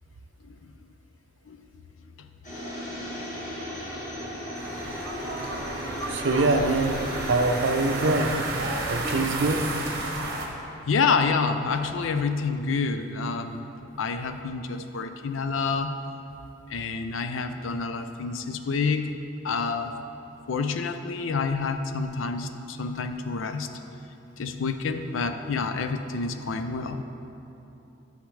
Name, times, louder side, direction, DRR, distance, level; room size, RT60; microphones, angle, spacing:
sound 1, 2.4-8.1, equal, 40° left, 1.7 m, -35 dB
sound 2, 4.5-10.5, right 2 dB, 50° right, 1.0 m, -32 dB
voice 1, 6.1-6.9 7.3-8.3 8.9-9.6, right 3 dB, 65° right, 6 dB, 0.5 m, -23 dB
voice 2, 9.0-9.4 10.1-10.5 10.9-13.6 14.0-16.0 16.7-19.9 20.5-23.7 24.4-27.0, left 4 dB, 75° left, 8 dB, 0.5 m, -28 dB
11.5 x 6.4 x 3.2 m, 3.0 s
head